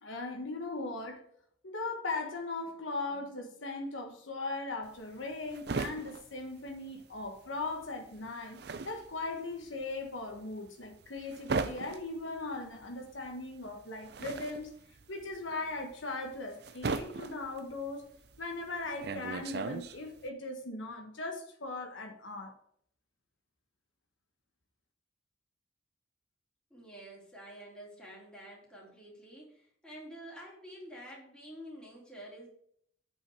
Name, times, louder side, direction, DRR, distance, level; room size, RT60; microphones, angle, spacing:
voice 1, 0.0-1.2 1.6-8.6 8.8-14.7 15.1-18.1 18.4-22.5, left 3 dB, 85° left, 3 dB, 1.3 m, -39 dB
sound 1, 4.8-7.4 7.6-20.3, right 4 dB, 55° right, 0.5 m, -39 dB
voice 2, 26.7-32.5, equal, 5° left, -4 dB, 2.5 m, -49 dB
8.1 x 5.5 x 4.7 m, 0.66 s
head